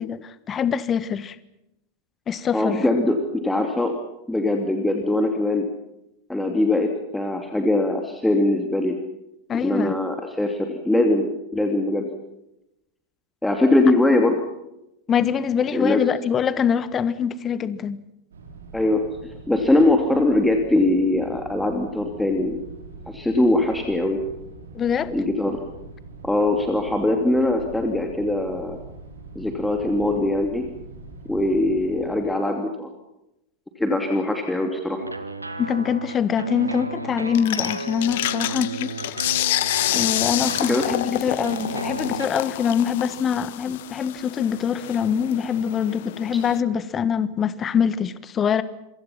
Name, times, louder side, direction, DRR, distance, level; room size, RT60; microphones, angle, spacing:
voice 1, 0.0-1.4 2.3-2.8 9.5-9.9 15.1-18.0 24.7-25.1 35.6-38.9 39.9-48.6, left 7 dB, 25° left, 1.4 m, -24 dB
voice 2, 2.5-3.9 4.3-5.7 6.3-9.0 9.6-12.1 13.4-14.4 15.7-16.0 18.7-19.0 19.5-22.6 23.1-24.2 25.1-25.6 26.2-28.8 29.3-30.7 31.3-32.9 33.8-35.0 40.7-40.8, left 2 dB, 5° left, 2.8 m, -21 dB
sound 1, 18.3-32.2, right 3 dB, 65° right, 5.4 m, -43 dB
sound 2, 35.0-42.3, right 3 dB, 85° right, 1.9 m, -33 dB
sound 3, 37.3-46.6, left 16 dB, 55° left, 0.9 m, -28 dB
28.0 x 24.5 x 5.8 m
figure-of-eight pair, 90°, 0 cm